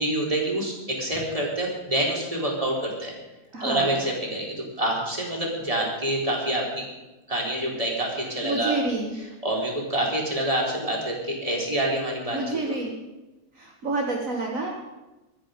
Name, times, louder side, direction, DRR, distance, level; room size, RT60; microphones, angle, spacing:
voice 1, 0.0-3.1 3.6-6.9 7.3-8.7 9.4-12.7, right 1 dB, 20° right, -2 dB, 4.1 m, -27 dB
voice 2, 3.5-4.0 8.4-9.1 12.3-12.9 13.6-14.7, right 2 dB, 55° right, -1 dB, 2.0 m, -28 dB
24.5 x 9.5 x 5.2 m, 1.1 s
omnidirectional pair, 1.7 m